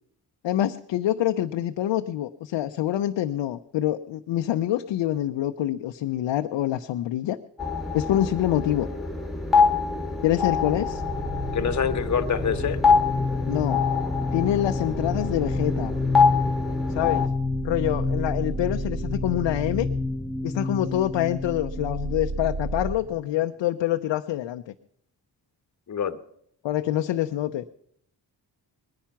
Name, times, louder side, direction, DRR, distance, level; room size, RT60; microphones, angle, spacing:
voice 1, 0.4-7.4 7.9-8.9 10.2-11.0 13.5-13.8 14.3-15.9 17.0-17.2 17.6-19.9 20.4-24.7 26.6-27.6, left 13 dB, 85° left, 0.6 m, -26 dB
sound 1, 7.6-17.3, left 5 dB, ahead, 1.9 m, -25 dB
sound 2, 9.6-23.0, right 3 dB, 75° right, 2.4 m, -36 dB
sound 3, 10.9-23.1, left 3 dB, 20° left, 1.4 m, -30 dB
voice 2, 11.5-12.8 25.9-26.2, left 7 dB, 40° left, 1.1 m, -26 dB
20.5 x 10.5 x 5.8 m
cardioid pair, 80°, 43 cm